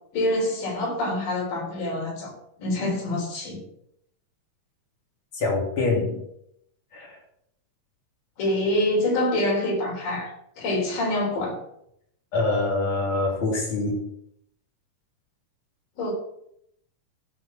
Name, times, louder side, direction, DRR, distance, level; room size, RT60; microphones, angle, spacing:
voice 1, 0.1-2.3 2.6-3.6 8.4-11.6 16.0-16.1, left 1 dB, 80° left, 5.3 m, -26 dB
voice 2, 5.3-6.2 6.9-7.2 12.3-14.1, left 2 dB, 40° left, 4.0 m, -25 dB
15.0 x 6.0 x 5.8 m
omnidirectional pair, 3.8 m